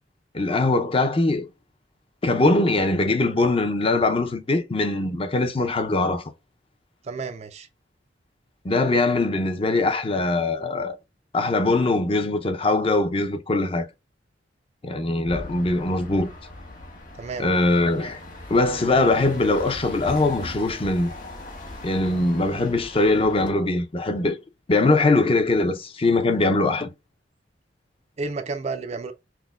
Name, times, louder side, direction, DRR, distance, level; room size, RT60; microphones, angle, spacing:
voice 1, 0.3-1.5 2.2-6.2 8.6-11.0 11.3-13.9 14.8-16.3 17.4-18.2 18.5-21.1 21.8-24.4 24.7-26.9, left 2 dB, 30° left, 0.6 m, -22 dB
voice 2, 7.0-7.7 17.2-17.5 28.2-29.1, right 4 dB, 35° right, 0.4 m, -31 dB
sound 1, 15.3-23.5, left 1 dB, 45° left, 1.5 m, -39 dB
5.8 x 2.1 x 2.3 m
head